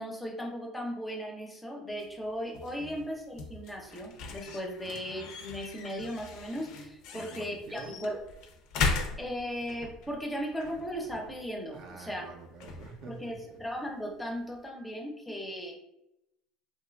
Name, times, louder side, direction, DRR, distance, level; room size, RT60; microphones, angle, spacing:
voice 1, 0.0-8.2 9.2-12.3 13.1-15.8, equal, 10° left, 2 dB, 0.5 m, -37 dB
sound 1, 1.9-14.7, left 4 dB, 70° left, 0.4 m, -39 dB
voice 2, 2.8-3.1 4.8-5.0 7.1-8.1 11.7-13.4, right 4 dB, 60° right, 3 dB, 0.4 m, -47 dB
2.8 x 2.3 x 2.2 m, 0.86 s
supercardioid pair, 115°, 0 cm